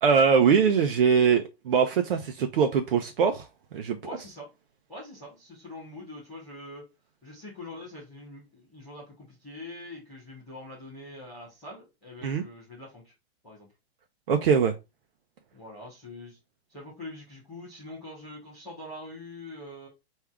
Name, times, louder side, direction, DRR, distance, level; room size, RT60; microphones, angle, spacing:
voice 1, 0.0-3.5 3.7-4.0 12.2-12.4 14.3-14.7, right 6 dB, 60° right, 0.7 m, -22 dB
voice 2, 4.0-4.5 4.9-6.8 7.2-13.1 13.4-13.7 15.5-16.4 16.7-19.9, left 1 dB, ahead, 0.3 m, -44 dB
4.7 x 2.7 x 3.5 m
supercardioid pair, 180°, 33 cm